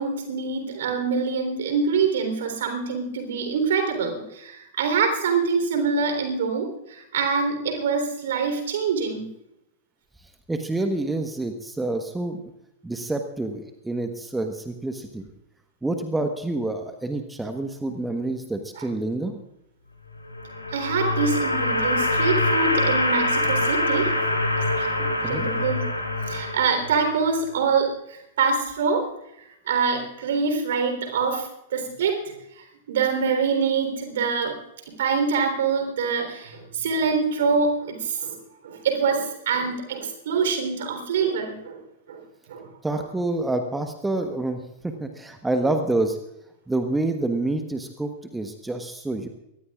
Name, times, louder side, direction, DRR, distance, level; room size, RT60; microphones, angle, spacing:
voice 1, 0.0-9.3 18.8-18.9 20.7-24.1 24.7-25.8 26.3-29.1 29.7-34.6 34.9-38.4 38.6-41.8 42.1-42.2 42.5-42.7, right 5 dB, 60° right, 6 dB, 3.6 m, -25 dB
voice 2, 10.5-12.4 12.8-15.2 15.8-19.4 25.2-25.4 42.8-46.2 46.7-49.3, right 2 dB, 10° right, 6 dB, 1.2 m, -27 dB
sound 1, 20.2-27.3, left 1 dB, 85° left, 2.6 m, -24 dB
24.0 x 18.0 x 2.4 m, 0.84 s
figure-of-eight pair, 95°, 0 cm